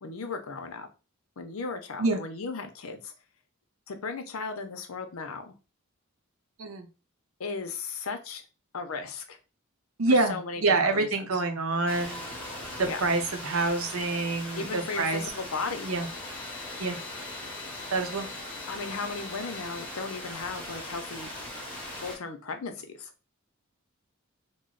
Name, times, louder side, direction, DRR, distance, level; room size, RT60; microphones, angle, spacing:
voice 1, 0.0-0.9 1.4-3.1 3.9-5.5 7.4-8.4 8.7-9.4 10.1-11.4 12.8-13.0 14.5-15.9 18.7-21.3 22.0-23.1, left 4 dB, 75° left, 6 dB, 0.7 m, -36 dB
voice 2, 10.0-12.2 12.8-15.2 15.8-16.1 16.8-17.0 17.9-18.3, right 3 dB, 75° right, 5 dB, 0.7 m, -27 dB
sound 1, 11.9-22.2, left 1 dB, 10° left, 1.0 m, -39 dB
3.0 x 2.1 x 3.8 m, 0.31 s
head